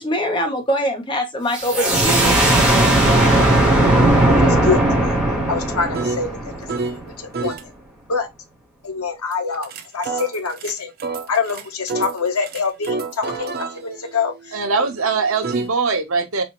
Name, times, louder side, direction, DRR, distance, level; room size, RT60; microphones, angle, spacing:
voice 1, 0.0-2.3, equal, 20° left, 0.9 m, -23 dB
sound 1, 1.5-7.1, right 1 dB, 5° right, 1.1 m, -17 dB
sound 2, 2.2-2.4 3.0-7.0 7.3-7.6 9.3-15.7, right 4 dB, 45° right, 0.5 m, -30 dB
voice 2, 3.8-5.2 5.5-6.4 7.2-7.5 8.1-8.3 8.8-10.9 11.3-13.5 13.8-14.9, left 5 dB, 85° left, 0.9 m, -25 dB
voice 3, 14.5-16.4, right 4 dB, 70° right, 0.9 m, -21 dB
4.2 x 2.5 x 3.0 m
head